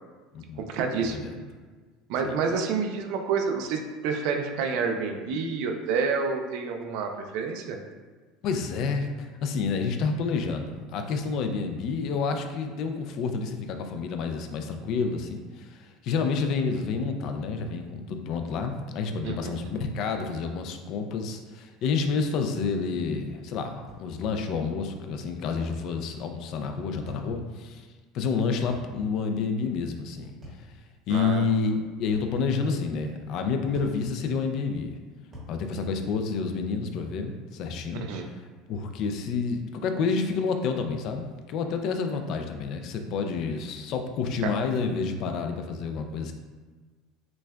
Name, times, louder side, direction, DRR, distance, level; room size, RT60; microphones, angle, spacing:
voice 1, 0.6-1.3 2.1-7.8 19.2-19.6 31.1-31.4 37.9-38.2 44.4-44.5, right 5 dB, 60° right, 4 dB, 0.4 m, -29 dB
voice 2, 8.4-27.9 28.1-30.3 30.6-30.7 31.1-35.0 35.5-38.3 38.7-46.3, left 5 dB, 45° left, 5 dB, 0.3 m, -29 dB
sound 1, 23.9-24.1 25.6-25.8 27.1-27.3 28.7-28.9 30.4-30.7 32.1-32.4 33.7-34.0 35.3-35.6, left 2 dB, 20° right, 1.2 m, -44 dB
6.1 x 2.2 x 2.2 m, 1.4 s
cardioid pair, 170°, 0 cm